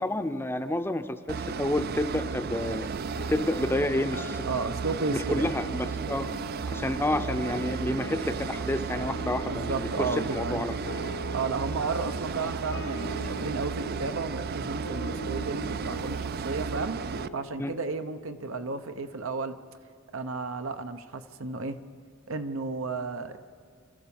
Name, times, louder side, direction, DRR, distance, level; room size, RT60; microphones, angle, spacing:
voice 1, 0.0-2.9 3.3-4.4 5.1-6.3 6.7-10.8 17.6-17.8, left 1 dB, 10° left, 10 dB, 0.6 m, -29 dB
sound 1, 1.3-17.3, right 5 dB, 50° right, 0.4 m, -34 dB
sound 2, 3.1-19.9, equal, 70° left, 1.1 m, -43 dB
voice 2, 4.4-5.5 9.5-10.6 11.3-17.0 17.3-19.6 20.1-21.8 22.3-23.4, right 4 dB, 80° right, 9 dB, 1.0 m, -33 dB
27.0 x 14.0 x 7.2 m, 2.1 s
head